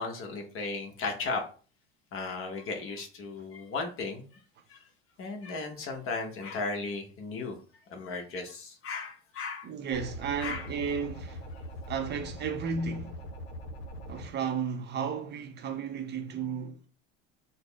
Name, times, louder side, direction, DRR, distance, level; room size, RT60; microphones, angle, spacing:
voice 1, 0.0-1.4 2.1-4.4 4.7-4.9 5.2-7.6 7.9-9.7 10.4-10.7, left 4 dB, 45° left, 1.0 m, -36 dB
voice 2, 9.6-11.5 11.9-13.3 14.1-16.9, right 6 dB, 35° right, 0.5 m, -33 dB
sound 1, 9.9-14.3, equal, 85° left, 0.6 m, -42 dB
3.9 x 2.0 x 3.4 m
supercardioid pair, 110°, 31 cm